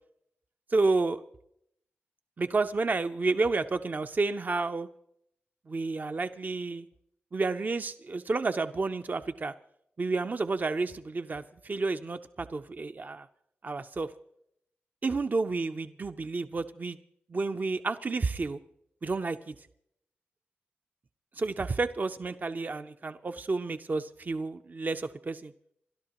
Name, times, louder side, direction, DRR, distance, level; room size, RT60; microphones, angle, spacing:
voice 1, 0.7-1.2 2.4-4.9 5.7-6.9 7.3-9.5 10.0-13.3 13.6-14.1 15.0-17.0 17.3-18.6 19.0-19.5 21.3-25.5, right 3 dB, 45° right, 9 dB, 0.6 m, -30 dB
28.0 x 12.5 x 3.0 m, 0.73 s
cardioid pair, 65°, 4 cm